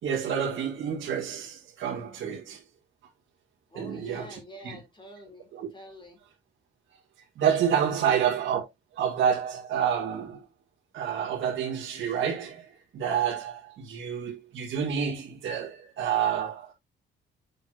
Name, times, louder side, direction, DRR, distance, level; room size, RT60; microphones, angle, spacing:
voice 1, 0.0-2.6 3.7-4.4 4.6-4.8 5.5-5.7 7.4-8.6 8.9-10.5 10.9-16.7, right 8 dB, 75° right, 2.0 m, -28 dB
voice 2, 3.7-6.2 7.9-8.2, left 1 dB, 25° left, 3.9 m, -47 dB
7.5 x 6.4 x 2.9 m
cardioid pair, 90°, 20 cm